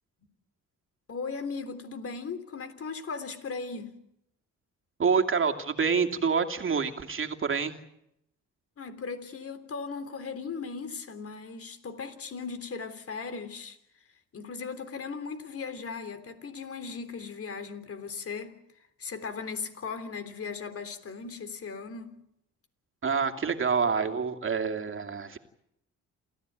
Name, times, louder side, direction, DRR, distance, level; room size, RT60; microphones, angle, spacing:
voice 1, 1.1-4.0 8.8-13.8 14.3-18.6 19.0-22.2, left 5 dB, 50° left, 3.5 m, -37 dB
voice 2, 5.0-7.8 23.0-25.4, right 5 dB, 45° right, 2.7 m, -27 dB
28.0 x 15.0 x 9.4 m
cardioid pair, 90°, 30 cm